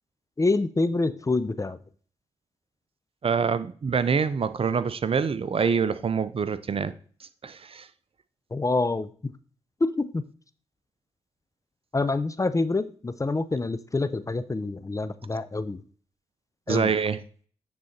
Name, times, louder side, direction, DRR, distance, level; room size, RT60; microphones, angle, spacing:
voice 1, 0.4-1.8 8.5-9.3 9.8-10.2 11.9-15.8 16.7-16.9, left 3 dB, 25° left, 0.7 m, -26 dB
voice 2, 3.2-6.9 7.4-7.9 16.7-17.2, right 6 dB, 45° right, 0.7 m, -25 dB
9.3 x 3.9 x 4.3 m
hypercardioid pair, 40°, 13 cm